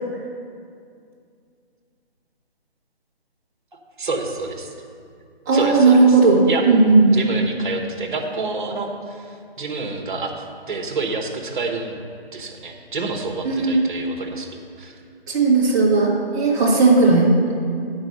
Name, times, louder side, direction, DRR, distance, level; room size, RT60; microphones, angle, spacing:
voice 1, 4.0-4.7 5.5-6.2 6.5-6.6 7.1-12.0 12.3-15.0, right 3 dB, 50° right, 3 dB, 1.2 m, -28 dB
voice 2, 5.5-6.4 6.7-7.1 13.4-13.8 15.3-17.3, right 3 dB, 20° right, -4 dB, 1.2 m, -15 dB
10.0 x 4.7 x 6.4 m, 2.3 s
figure-of-eight pair, 155°, 31 cm